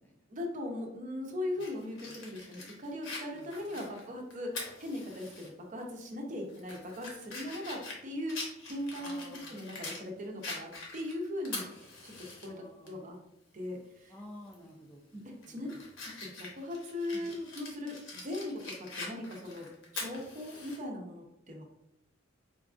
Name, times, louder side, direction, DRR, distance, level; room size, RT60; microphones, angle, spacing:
voice 1, 0.3-12.6 12.8-13.2 13.5-14.1 15.1-15.7 16.0-19.7 19.9-21.6, left 1 dB, 40° right, 1 dB, 0.6 m, -39 dB
Fire, 1.6-5.5 5.9-6.0 6.5-10.0 10.4-12.5 12.9-13.0 14.5-14.7 15.2-20.8, left 3 dB, 75° left, 0.9 m, -44 dB
voice 2, 3.3-3.9 6.3-6.5 8.9-9.6 12.4-13.1 14.1-15.1 15.5-15.8 17.1-17.3, left 1 dB, 10° left, 0 dB, 0.3 m, -52 dB
4.5 x 2.4 x 2.4 m, 0.83 s
head